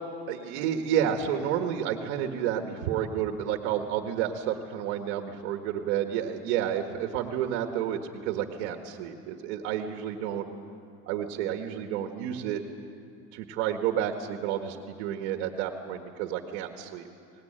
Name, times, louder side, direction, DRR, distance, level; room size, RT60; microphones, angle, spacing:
voice 1, 0.3-10.5 11.1-12.6 13.3-17.1, right 9 dB, 85° right, 5 dB, 1.7 m, -30 dB
24.5 x 19.5 x 8.9 m, 2.5 s
cardioid pair, 155°, 33 cm